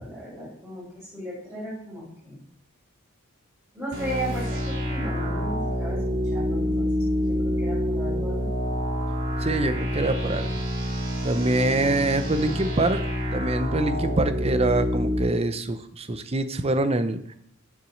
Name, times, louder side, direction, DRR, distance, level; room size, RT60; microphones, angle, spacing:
voice 1, 0.0-2.4 3.7-8.5, equal, 5° right, -11 dB, 4.6 m, -35 dB
sound 1, 3.9-15.2, equal, 60° right, 3.8 m, -27 dB
voice 2, 9.4-10.5 11.2-13.0 13.3-17.2, right 2 dB, 30° right, 10 dB, 0.6 m, -25 dB
7.4 x 7.0 x 6.3 m, 0.69 s
head